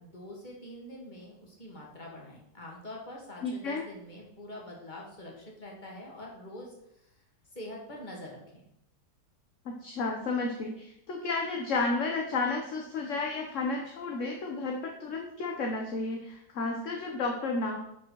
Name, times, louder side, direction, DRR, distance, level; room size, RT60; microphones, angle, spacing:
voice 1, 0.0-7.1 7.5-8.7, left 1 dB, 25° left, -2 dB, 2.3 m, -45 dB
voice 2, 3.4-3.8 9.6-17.8, left 3 dB, 50° left, 1 dB, 1.2 m, -32 dB
10.5 x 5.3 x 4.6 m, 0.80 s
omnidirectional pair, 1.9 m